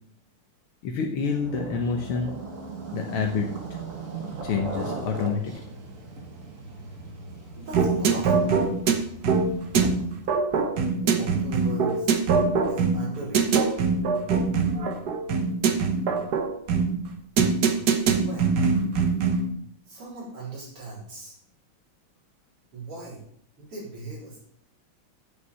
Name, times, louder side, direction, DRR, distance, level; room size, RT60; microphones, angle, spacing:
voice 1, 0.8-2.3 2.9-3.5 4.4-5.5, left 5 dB, 80° left, 2 dB, 1.9 m, -27 dB
sound 1, 1.2-10.3, right 3 dB, 40° right, 1.8 m, -38 dB
voice 2, 7.5-8.5 11.0-12.1 12.7-13.7 18.1-18.6 19.9-21.4 22.7-23.2 23.6-24.4, right 3 dB, 80° right, -5 dB, 5.2 m, -39 dB
sound 2, 7.7-19.5, right 5 dB, 55° right, 1.4 m, -23 dB
8.4 x 7.5 x 7.1 m, 0.69 s
omnidirectional pair, 2.4 m